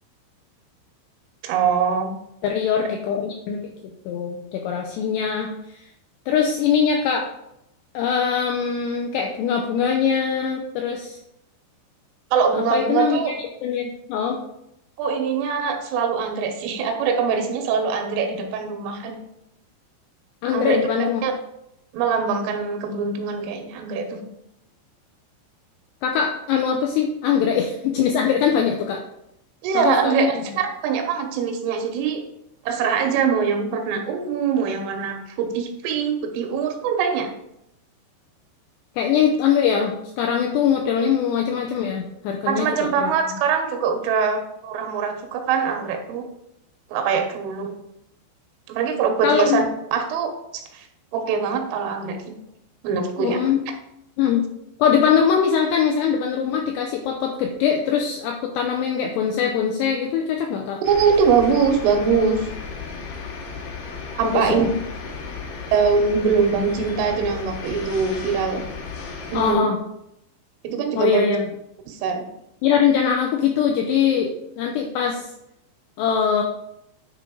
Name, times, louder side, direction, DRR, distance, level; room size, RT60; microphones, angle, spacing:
voice 1, 1.4-2.1 12.3-13.3 15.0-19.2 20.5-20.8 21.2-21.3 21.9-24.2 29.6-32.2 32.7-37.3 42.5-46.3 46.9-47.7 48.7-50.3 50.7-50.9 51.1-52.4 52.8-53.4 60.8-62.5 64.2-64.7 65.7-68.6 69.3-69.7 70.6-71.4 71.9-72.3, right 6 dB, 85° right, 4 dB, 3.5 m, -22 dB
voice 2, 2.4-3.6 4.1-5.9 6.3-7.3 7.9-11.2 12.5-13.2 13.6-14.4 20.4-21.2 26.0-29.0 29.7-30.3 39.0-43.1 49.2-49.6 53.2-53.6 54.2-54.5 54.8-60.8 64.2-64.6 69.3-69.8 71.0-71.5 72.6-75.3 76.0-76.4, left 7 dB, 85° left, 2 dB, 2.4 m, -22 dB
sound 1, 60.8-69.6, left 4 dB, 70° left, 2.6 m, -34 dB
9.8 x 3.8 x 5.2 m, 0.81 s
omnidirectional pair, 5.6 m